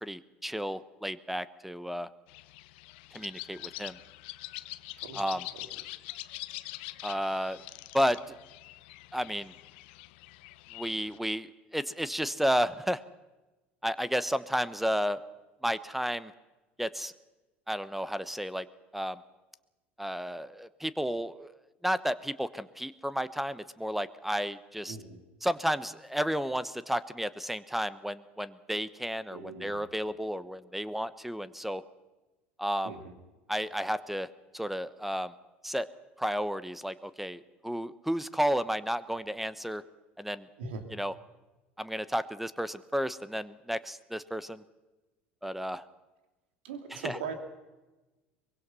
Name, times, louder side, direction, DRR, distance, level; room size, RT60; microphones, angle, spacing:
voice 1, 0.0-2.1 3.1-4.0 5.1-5.4 7.0-7.6 7.9-8.2 9.1-9.5 10.7-13.0 13.8-15.2 15.6-16.3 16.8-17.1 17.7-18.7 18.9-19.2 20.0-21.5 21.8-25.0 25.4-31.8 32.6-32.9 33.5-34.3 34.5-35.3 35.6-35.9 36.2-39.8 40.2-40.5 41.0-41.1 41.8-44.6 45.4-45.8 46.9-47.1, equal, 5° right, 16 dB, 1.0 m, -32 dB
sound 1, 2.3-11.2, left 19 dB, 65° left, 0.7 m, -44 dB
voice 2, 5.0-5.8 24.9-25.2 29.3-29.8 32.8-33.1 40.6-40.9 46.6-47.3, right 5 dB, 70° right, 6 dB, 3.0 m, -41 dB
23.5 x 21.5 x 5.6 m, 1.1 s
figure-of-eight pair, 70°, 6 cm